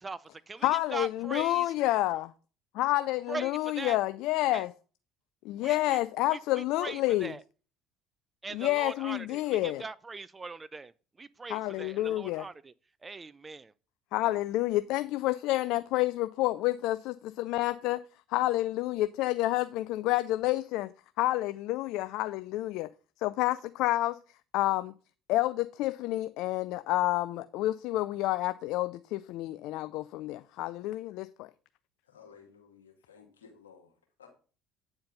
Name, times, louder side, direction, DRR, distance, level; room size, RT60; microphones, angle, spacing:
voice 1, 0.0-1.7 3.3-4.0 4.5-4.6 5.6-6.0 6.3-7.4 8.4-10.9 11.2-12.7 13.0-13.7, right 4 dB, 25° right, 0.5 m, -41 dB
voice 2, 0.6-2.3 2.7-4.7 5.4-7.3 8.5-9.8 11.5-12.4 14.1-18.0 18.3-20.9 21.2-22.9 23.2-24.2 24.5-24.9 25.3-31.5, left 16 dB, 65° left, 0.4 m, -29 dB
voice 3, 32.0-34.5, left 6 dB, 90° left, 2.1 m, -56 dB
9.3 x 4.4 x 5.3 m
hypercardioid pair, 65°, 0 cm